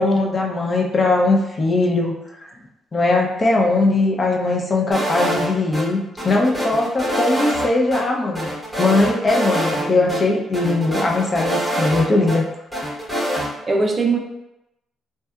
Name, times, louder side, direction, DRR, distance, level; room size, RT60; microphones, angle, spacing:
voice 1, 0.0-2.2 2.9-8.5 8.8-12.4, left 2 dB, 35° left, 0 dB, 0.5 m, -19 dB
sound 1, 4.9-5.8 6.2-7.7 7.9-8.0 8.3-9.8 10.1-10.2 10.5-12.4 12.7-13.5, equal, 5° left, 0.9 m, -24 dB
voice 2, 9.8-10.2 13.7-14.2, right 3 dB, 35° right, 1 dB, 0.4 m, -21 dB
2.8 x 2.2 x 2.2 m, 0.87 s
cardioid pair, 90°, 0 cm